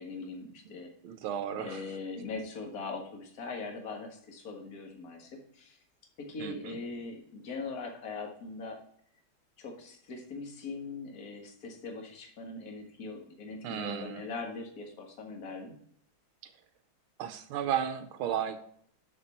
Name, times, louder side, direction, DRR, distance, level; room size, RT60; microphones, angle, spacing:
voice 1, 0.0-0.9 1.6-5.8 6.2-8.8 9.6-15.7, left 3 dB, 45° left, 1 dB, 2.0 m, -41 dB
voice 2, 1.0-1.9 6.4-6.8 13.6-14.2 16.4-16.5 17.2-18.6, right 9 dB, 90° right, 8 dB, 1.6 m, -34 dB
12.0 x 4.8 x 4.4 m, 0.64 s
omnidirectional pair, 2.3 m